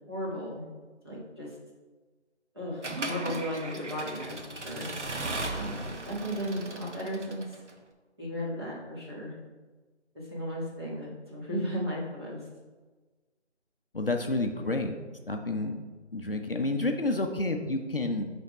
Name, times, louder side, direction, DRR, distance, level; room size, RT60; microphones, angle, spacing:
voice 1, 0.1-0.7 1.0-1.6 2.5-4.9 5.5-7.6 8.2-9.3 10.1-12.4, equal, 20° right, -7 dB, 1.3 m, -35 dB
Accelerating revving vroom / Mechanisms, 2.8-7.7, right 2 dB, 75° right, 1.0 m, -37 dB
voice 2, 13.9-14.9 15.3-15.8 16.1-18.3, left 2 dB, 50° left, 4 dB, 0.6 m, -29 dB
6.9 x 3.5 x 5.1 m, 1.3 s
figure-of-eight pair, 175°, 35 cm